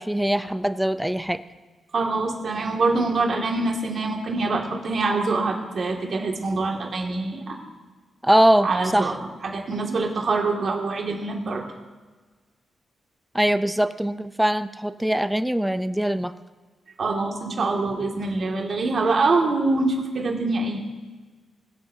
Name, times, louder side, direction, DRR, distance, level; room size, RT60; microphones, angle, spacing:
voice 1, 0.0-1.4 8.2-9.1 13.3-16.3, right 1 dB, 5° right, 12 dB, 0.5 m, -22 dB
voice 2, 1.9-7.6 8.6-11.6 17.0-20.8, right 3 dB, 60° right, 0 dB, 2.3 m, -25 dB
22.5 x 7.7 x 2.8 m, 1.4 s
cardioid pair, 70°, 0 cm